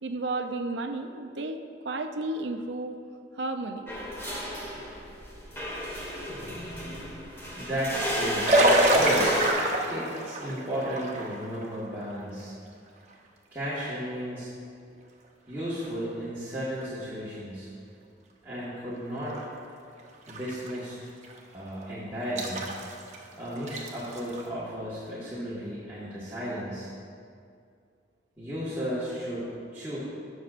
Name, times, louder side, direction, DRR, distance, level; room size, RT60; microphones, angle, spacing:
voice 1, 0.0-3.0 3.4-3.9, right 2 dB, 80° right, 7 dB, 0.6 m, -32 dB
sound 1, 3.9-9.5, equal, 15° left, 1.4 m, -33 dB
voice 2, 7.6-9.3 9.9-12.5 13.5-14.5 15.5-17.7 18.4-19.4 20.3-21.0 21.5-22.6 23.4-26.9 28.4-29.4 29.7-30.0, equal, 15° right, -11 dB, 1.7 m, -34 dB
sound 2, 8.4-11.7 12.2-12.3 15.8-15.9 16.8-16.9 18.9-19.0 19.4-19.5 20.0-20.8 21.2-21.4 22.4-23.2 23.6-24.4, right 1 dB, 40° right, 0.9 m, -26 dB
18.5 x 6.3 x 2.6 m, 2.4 s
head